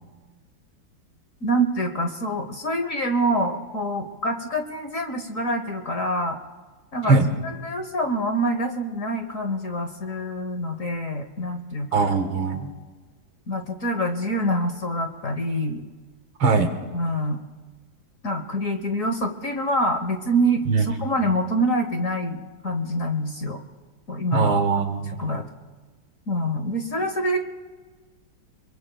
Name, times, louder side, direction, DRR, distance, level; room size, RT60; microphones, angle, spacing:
voice 1, 1.4-6.4 6.9-11.9 13.5-15.8 16.9-17.4 18.2-23.6 24.1-24.6 25.2-25.5 26.3-27.4, right 1 dB, 45° left, 6 dB, 1.2 m, -26 dB
voice 2, 11.9-12.7 16.4-16.7 20.7-20.8 24.3-25.1, right 4 dB, 70° right, 6 dB, 2.2 m, -20 dB
26.0 x 23.0 x 2.3 m, 1.4 s
omnidirectional pair, 2.4 m